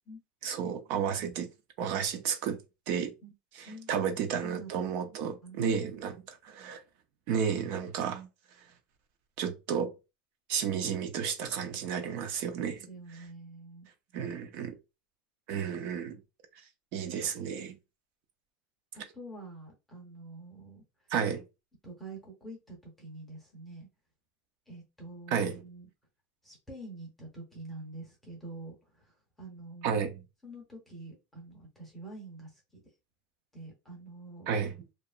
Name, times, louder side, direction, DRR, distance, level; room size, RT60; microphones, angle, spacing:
voice 1, 0.4-1.5 1.8-2.6 2.9-3.1 3.5-6.8 7.3-8.3 9.4-9.9 10.5-12.9 14.1-14.8 15.5-16.2 16.9-17.8 21.1-21.4 25.3-25.6 29.8-30.2 34.5-34.8, right 7 dB, 45° right, 0.5 m, -32 dB
voice 2, 3.7-4.1 4.4-4.9 5.4-6.1 12.6-13.9 19.1-20.8 21.8-23.9 24.7-25.9 26.4-30.1 30.4-32.8 33.5-34.5, right 2 dB, 5° left, 0.7 m, -46 dB
2.8 x 2.4 x 2.4 m
supercardioid pair, 175°, 5 cm